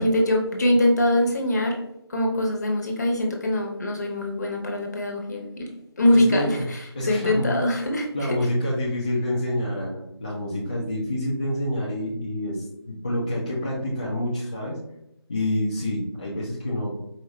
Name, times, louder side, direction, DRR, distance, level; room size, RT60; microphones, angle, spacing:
voice 1, 0.0-1.8 2.1-5.7 6.0-8.4, left 1 dB, 40° left, 1 dB, 0.9 m, -23 dB
voice 2, 6.1-6.7 6.9-7.5 8.1-14.8 15.3-16.9, left 1 dB, 20° left, -6 dB, 0.5 m, -27 dB
4.9 x 2.6 x 3.1 m, 0.81 s
figure-of-eight pair, 165°, 14 cm